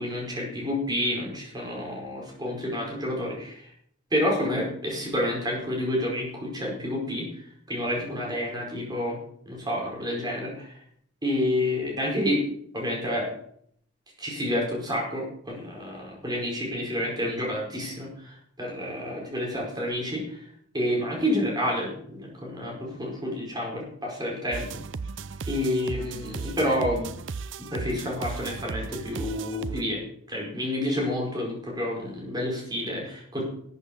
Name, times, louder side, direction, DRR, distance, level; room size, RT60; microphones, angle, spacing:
voice 1, 0.0-3.7 4.1-7.4 7.7-9.2 9.4-10.8 11.2-12.4 12.7-13.3 14.2-20.4 20.7-24.7 25.5-27.1 27.7-30.0 30.3-33.4, left 1 dB, 20° right, -1 dB, 5.0 m, -29 dB
sound 1, 24.5-29.8, right 4 dB, 60° right, 0.5 m, -36 dB
13.0 x 8.1 x 7.0 m, 0.67 s
head